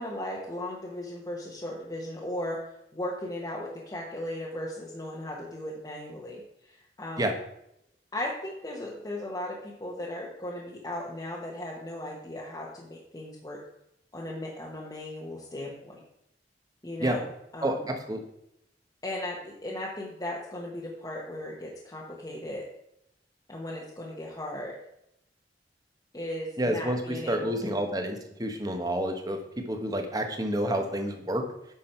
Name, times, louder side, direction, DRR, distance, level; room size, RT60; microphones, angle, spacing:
voice 1, 0.0-2.6 2.9-7.3 8.1-13.6 14.1-16.0 16.8-17.3 17.5-17.8 19.0-22.6 23.5-24.7 26.1-27.5, left 1 dB, 20° left, -4 dB, 1.2 m, -37 dB
voice 2, 17.6-18.2 26.6-31.4, right 1 dB, 20° right, 5 dB, 1.2 m, -29 dB
9.6 x 6.2 x 4.5 m, 0.78 s
head